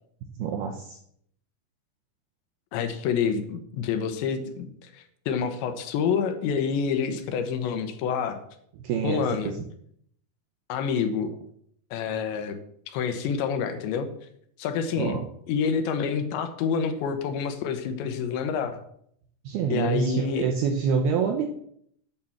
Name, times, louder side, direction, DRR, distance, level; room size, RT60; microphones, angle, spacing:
voice 1, 0.4-1.0 8.8-9.3 15.0-15.3 19.5-21.5, right 6 dB, 75° right, 4 dB, 2.3 m, -26 dB
voice 2, 2.7-8.4 9.0-9.5 10.7-11.3 11.9-12.6 12.9-14.1 14.6-15.2 15.5-18.8 19.7-20.5, left 6 dB, 75° left, 8 dB, 3.0 m, -28 dB
8.9 x 6.5 x 7.1 m, 0.68 s
omnidirectional pair, 5.4 m